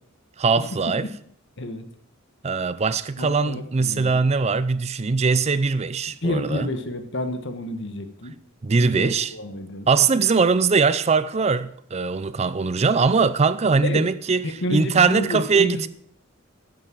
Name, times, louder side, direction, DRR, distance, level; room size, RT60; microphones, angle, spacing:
voice 1, 0.4-1.1 2.4-6.7 8.6-9.3 9.9-15.9, right 4 dB, 30° right, 0.5 m, -21 dB
voice 2, 3.2-4.3 6.2-8.3 8.7-9.9 13.8-14.1 14.4-15.9, left 1 dB, 55° left, 1.5 m, -29 dB
13.5 x 7.6 x 7.6 m
head